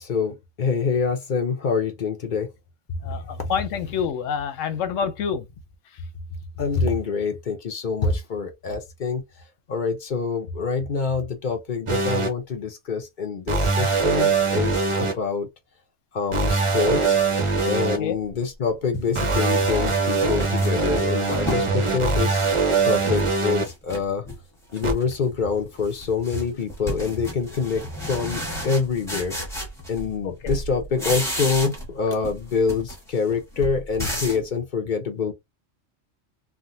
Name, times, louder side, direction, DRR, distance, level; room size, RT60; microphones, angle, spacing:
voice 1, 0.0-2.5 3.0-4.0 6.6-9.2 9.7-15.5 16.1-17.2 17.6-22.5 22.8-24.3 24.7-29.4 29.9-35.3, left 5 dB, 45° left, 0.8 m, -26 dB
voice 2, 3.0-5.5 17.8-18.2 30.2-30.5, left 7 dB, 80° left, 1.0 m, -28 dB
sound 1, 11.9-12.3 13.5-15.1 16.3-18.0 19.1-23.6 24.8-24.9, right 4 dB, 35° right, 0.6 m, -22 dB
sound 2, 18.3-18.4 18.9-21.7 22.2-23.3 23.6-24.4 24.7-25.2 25.5-30.2 30.5-32.0 32.2-34.5, equal, ahead, 1.1 m, -33 dB
3.5 x 2.2 x 2.6 m
omnidirectional pair, 1.3 m